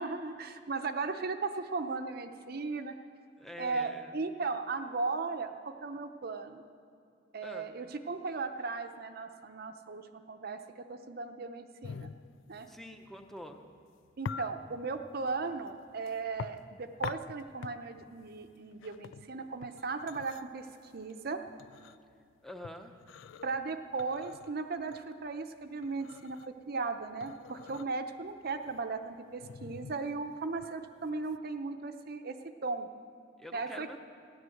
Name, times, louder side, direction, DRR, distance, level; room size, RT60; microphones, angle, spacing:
voice 1, 0.0-2.9 3.6-6.6 7.3-10.6 10.9-12.1 12.5-12.7 14.2-20.7 20.9-21.4 23.4-32.4 32.6-32.9 33.5-33.9, right 4 dB, 55° right, 7 dB, 0.7 m, -37 dB
voice 2, 3.4-4.1 7.4-7.7 12.7-13.6 22.4-22.9 33.4-34.1, left 1 dB, ahead, 5 dB, 0.8 m, -46 dB
sound 1, 11.8-31.4, left 6 dB, 85° left, 0.4 m, -46 dB
15.0 x 11.0 x 7.8 m, 2.4 s
head